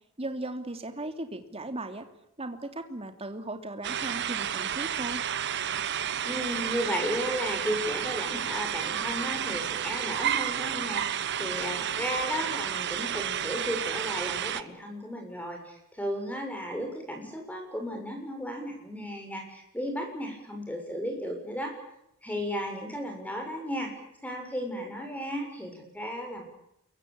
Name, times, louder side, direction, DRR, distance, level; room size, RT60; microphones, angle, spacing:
voice 1, 0.2-2.1 2.4-5.2, right 2 dB, 25° right, 7 dB, 2.8 m, -37 dB
sound 1, 3.8-14.6, right 9 dB, 55° right, 1.0 m, -31 dB
voice 2, 6.2-21.7 22.2-23.9 24.2-26.4, equal, 5° left, 3 dB, 6.9 m, -34 dB
28.0 x 23.0 x 8.6 m, 0.81 s
head